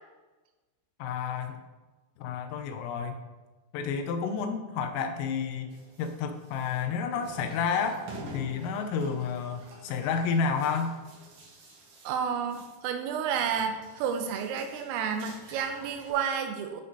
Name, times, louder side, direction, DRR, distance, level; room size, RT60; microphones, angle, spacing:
voice 1, 1.0-1.6 2.2-3.2 3.7-5.7 6.0-8.0 8.3-11.0, left 6 dB, 80° left, 6 dB, 3.5 m, -30 dB
sound 1, 5.7-13.0 13.3-16.1, right 1 dB, 70° right, 1.8 m, -48 dB
voice 2, 12.1-16.8, right 7 dB, 85° right, 6 dB, 3.6 m, -31 dB
11.0 x 8.1 x 4.1 m, 1.2 s
omnidirectional pair, 5.9 m